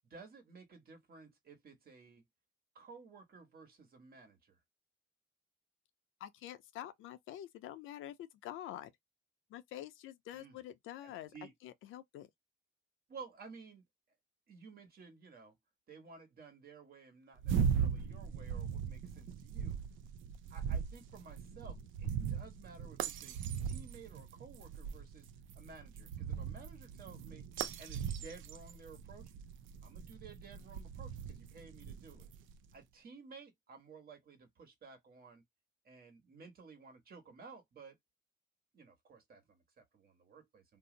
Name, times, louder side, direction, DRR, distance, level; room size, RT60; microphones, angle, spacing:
voice 1, 0.1-2.2 2.7-4.6 10.3-10.6 11.0-11.5 13.1-13.8 14.5-15.6 15.9-19.8 20.5-25.3 25.5-27.5 27.8-29.3 29.8-32.3 32.7-35.4 35.8-38.0 38.7-40.8, right 4 dB, 50° right, 1.2 m, -55 dB
voice 2, 6.2-8.9 9.5-11.3 11.6-12.3, left 12 dB, 85° left, 0.5 m, -47 dB
sound 1, 17.4-32.6, right 7 dB, 80° right, 0.5 m, -39 dB
2.7 x 2.0 x 3.7 m
cardioid pair, 90°, 20 cm